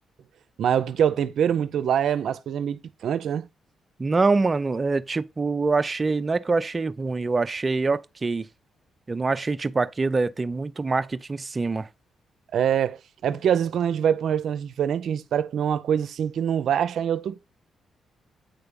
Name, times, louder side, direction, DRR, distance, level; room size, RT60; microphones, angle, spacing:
voice 1, 0.6-3.5 12.5-13.0 13.2-17.4, right 9 dB, 70° right, 0.6 m, -24 dB
voice 2, 4.0-8.5 9.1-11.9, right 3 dB, 30° right, 0.6 m, -25 dB
8.9 x 3.4 x 5.3 m
cardioid pair, 70°, 0 cm